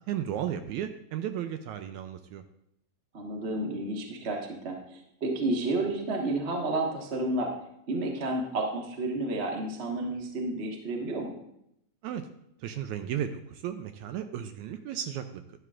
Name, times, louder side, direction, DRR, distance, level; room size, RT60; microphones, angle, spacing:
voice 1, 0.1-2.4 12.0-12.3 12.6-15.4, right 10 dB, 80° right, 8 dB, 1.8 m, -34 dB
voice 2, 3.1-7.5 7.9-11.3, right 2 dB, 50° right, 1 dB, 0.8 m, -31 dB
12.0 x 11.0 x 2.5 m, 0.77 s
omnidirectional pair, 3.6 m